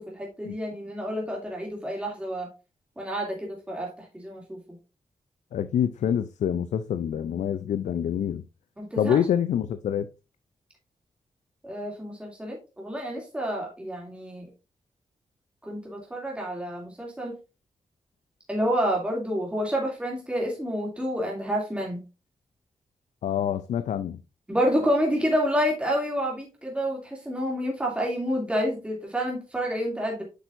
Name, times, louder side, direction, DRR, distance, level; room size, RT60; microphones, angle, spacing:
voice 1, 0.0-2.5 3.0-4.6 8.8-9.2 11.6-14.5 15.6-17.4 18.5-22.0 24.5-30.3, equal, 10° right, 2.6 m, -29 dB
voice 2, 5.5-8.4 9.0-10.1 23.2-24.2, left 9 dB, 80° left, 0.4 m, -26 dB
8.2 x 5.9 x 2.6 m
cardioid pair, 70°, 12 cm